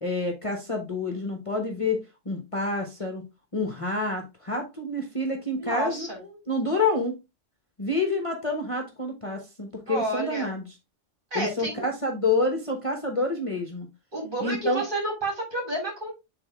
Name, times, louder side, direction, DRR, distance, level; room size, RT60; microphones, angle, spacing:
voice 1, 0.0-3.2 3.5-7.2 7.8-10.6 11.3-13.9 14.4-14.8, left 2 dB, 30° left, 3 dB, 1.0 m, -28 dB
voice 2, 5.6-6.2 9.9-10.5 11.3-11.8 14.1-16.1, right 2 dB, 40° right, -1 dB, 3.5 m, -30 dB
7.8 x 3.9 x 3.4 m, 0.24 s
omnidirectional pair, 1.3 m